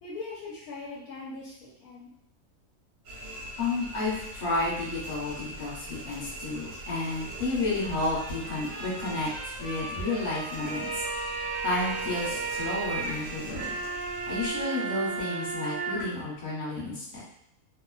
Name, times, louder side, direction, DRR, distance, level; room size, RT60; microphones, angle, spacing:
voice 1, 0.0-2.1, left 3 dB, 75° left, -4 dB, 1.0 m, -40 dB
sound 1, 3.1-14.5, right 1 dB, 85° right, 1.3 m, -42 dB
voice 2, 3.6-9.3 9.6-11.0 11.6-13.8 14.3-17.2, left 2 dB, 40° left, -7 dB, 1.1 m, -31 dB
Trumpet, 7.8-15.5, equal, 45° right, 0.4 m, -43 dB
sound 2, 10.5-16.0, right 4 dB, 65° right, 0.9 m, -34 dB
2.8 x 2.1 x 2.3 m, 0.71 s
omnidirectional pair, 1.6 m